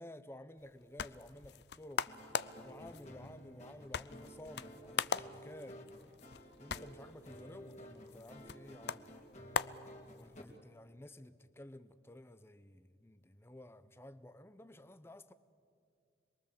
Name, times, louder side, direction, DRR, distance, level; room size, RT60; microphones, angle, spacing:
voice 1, 0.0-2.1 2.6-5.9 6.6-9.1 10.2-15.3, left 1 dB, 15° left, 0.7 m, -53 dB
sound 1, 0.6-10.5, left 6 dB, 65° left, 0.5 m, -42 dB
sound 2, 2.1-10.4, equal, 40° left, 2.7 m, -53 dB
26.5 x 22.0 x 7.4 m
head